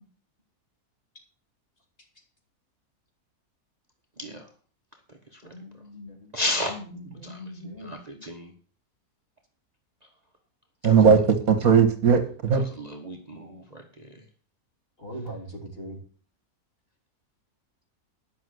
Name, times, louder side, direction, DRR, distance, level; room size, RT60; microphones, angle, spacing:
voice 1, 4.2-4.5 5.3-5.4 6.3-6.7 7.2-7.4 7.8-8.5 10.9-11.0 12.5-14.2, left 1 dB, 30° right, 3 dB, 1.3 m, -33 dB
voice 2, 5.4-6.3 6.7-7.9 15.0-16.0, equal, 40° left, 0 dB, 3.5 m, -40 dB
voice 3, 10.8-12.6, right 6 dB, 75° right, 8 dB, 2.1 m, -18 dB
11.0 x 6.1 x 7.8 m, 0.42 s
omnidirectional pair, 1.6 m